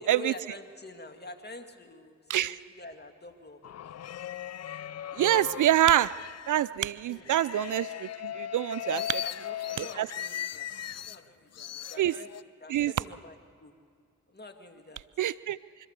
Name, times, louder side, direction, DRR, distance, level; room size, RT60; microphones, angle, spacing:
voice 1, 0.0-4.0 7.1-7.3 8.7-10.7 11.0-13.7 14.3-15.0, left 2 dB, 25° left, 6 dB, 2.3 m, -47 dB
sound 1, 3.6-6.7 7.2-11.2 11.5-12.4, left 10 dB, 45° left, 0.5 m, -38 dB
voice 2, 5.2-6.1 6.5-9.2 9.8-10.1 12.0-12.1 12.7-12.9 15.2-15.6, right 12 dB, 55° right, 18 dB, 0.5 m, -26 dB
25.0 x 13.0 x 8.1 m, 2.2 s
hypercardioid pair, 40°, 36 cm